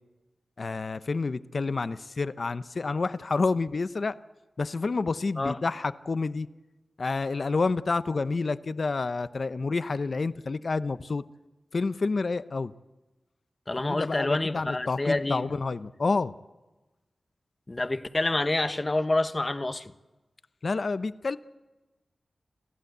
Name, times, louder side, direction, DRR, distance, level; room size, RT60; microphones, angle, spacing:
voice 1, 0.6-4.1 4.6-6.5 7.0-11.2 11.7-12.7 13.8-16.3 20.6-21.4, left 3 dB, 60° left, 0.8 m, -29 dB
voice 2, 13.7-15.4 17.7-19.9, left 2 dB, 30° left, 1.2 m, -27 dB
28.5 x 15.0 x 8.1 m
wide cardioid pair, 70°, 0 cm